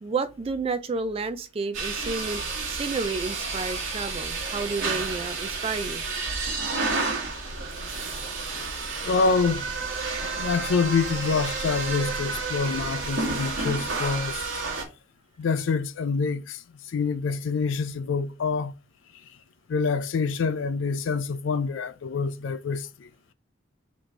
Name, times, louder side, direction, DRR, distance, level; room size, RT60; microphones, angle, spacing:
voice 1, 0.0-6.0, right 4 dB, 30° right, 0.3 m, -31 dB
sound 1, 1.7-14.8, right 3 dB, 85° right, 1.3 m, -30 dB
voice 2, 9.0-9.6 10.4-14.4 15.4-16.6 16.9-18.7 19.7-23.1, left 4 dB, 75° left, 0.4 m, -26 dB
4.0 x 3.0 x 3.2 m
head